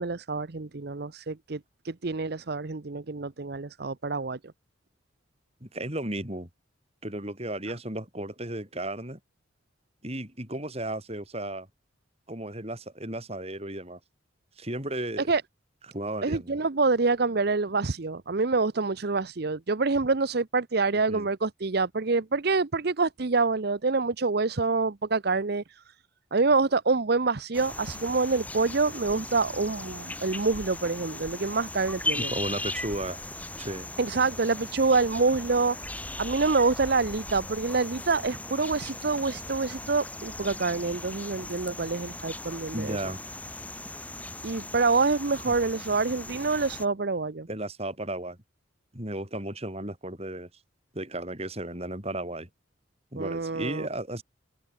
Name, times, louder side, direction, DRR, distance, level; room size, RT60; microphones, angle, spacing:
voice 1, 0.0-1.6 1.8-4.4 15.3-15.4 16.2-25.8 26.3-32.3 34.0-35.9 36.2-43.0 44.4-47.5 53.2-53.9, right 3 dB, 55° right, 0.8 m, -26 dB
voice 2, 5.6-6.5 7.0-9.2 10.0-11.7 12.3-14.0 14.6-15.3 15.9-16.6 21.1-21.3 32.2-33.2 33.6-33.9 42.7-43.2 45.5-45.6 47.5-48.4 48.9-50.5 50.9-52.5 53.1-54.2, right 1 dB, 30° right, 6.7 m, -34 dB
sound 1, 27.5-46.9, left 2 dB, 10° left, 4.4 m, -38 dB
open air
head